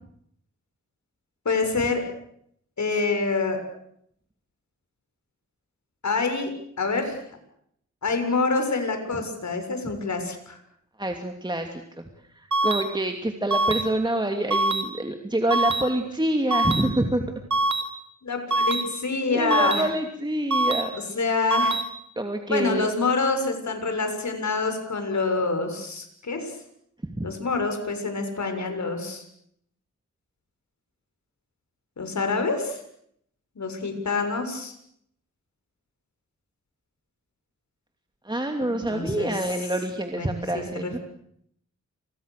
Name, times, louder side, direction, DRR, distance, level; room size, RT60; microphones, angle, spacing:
voice 1, 1.5-2.0 2.8-3.6 6.0-7.2 8.0-10.6 18.2-19.9 20.9-21.8 22.5-26.5 27.2-29.2 32.0-32.8 33.6-34.7 38.6-39.3 40.1-41.0, left 3 dB, 65° left, 6 dB, 7.1 m, -26 dB
voice 2, 11.0-12.1 12.3-17.3 19.3-20.9 22.2-22.9 27.0-27.3 38.2-41.0, right 1 dB, 15° right, 4 dB, 2.8 m, -27 dB
sound 1, 12.5-12.8 13.5-13.8 14.5-14.8 15.5-15.8 16.5-16.8 17.5-17.8 18.5-18.8 19.5-19.8 20.5-20.8 21.5-21.8, right 2 dB, 70° right, 3.6 m, -23 dB
30.0 x 27.0 x 6.8 m, 0.72 s
wide cardioid pair, 85°, 30 cm